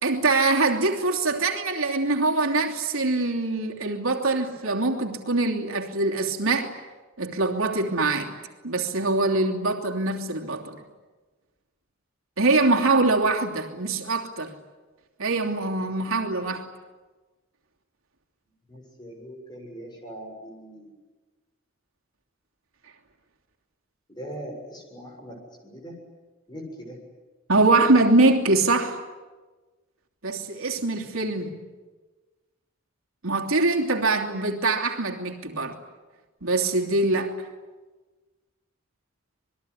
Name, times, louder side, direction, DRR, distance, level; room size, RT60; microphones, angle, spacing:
voice 1, 0.0-6.7 7.2-8.4 8.6-10.8 12.4-14.6 15.2-16.7 27.5-29.0 30.2-31.6 33.2-35.8 36.4-37.4, right 2 dB, 85° right, 3.0 m, -23 dB
voice 2, 18.7-20.9 24.1-26.0 26.5-27.0, equal, 20° left, 7.0 m, -41 dB
27.0 x 21.5 x 9.9 m
head